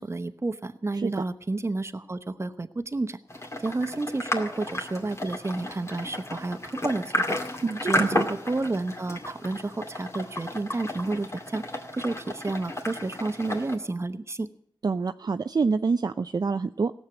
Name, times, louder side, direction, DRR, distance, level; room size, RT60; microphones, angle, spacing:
voice 1, 0.0-3.2 3.6-11.6 12.0-14.5, right 2 dB, 30° right, 11 dB, 0.9 m, -31 dB
sound 1, 3.3-13.8, left 1 dB, 35° left, 2.2 m, -33 dB
voice 2, 7.6-8.2 14.8-16.9, right 4 dB, 50° right, 9 dB, 0.5 m, -26 dB
17.0 x 7.4 x 9.1 m, 0.65 s
wide cardioid pair, 70°, 9 cm